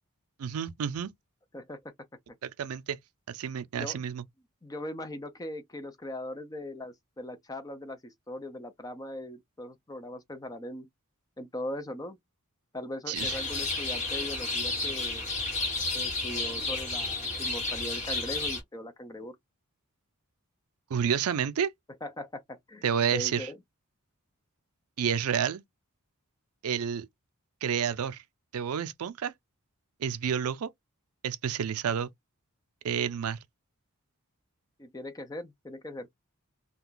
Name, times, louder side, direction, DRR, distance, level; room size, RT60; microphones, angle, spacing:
voice 1, 0.4-1.1 2.4-3.0 3.3-4.2 13.1-13.4 20.9-21.7 22.8-23.5 25.0-25.6 26.6-27.1 27.6-28.2 28.5-29.3 30.0-30.7 31.2-32.1 32.8-33.4, right 8 dB, 80° right, 0.4 m, -30 dB
voice 2, 4.6-10.9 11.4-12.2 12.7-15.3 15.9-19.4 22.0-22.8 23.1-23.6 34.8-36.1, left 1 dB, 15° left, 0.5 m, -39 dB
sound 1, 13.1-18.6, left 3 dB, 30° left, 1.3 m, -32 dB
2.4 x 2.2 x 3.7 m
head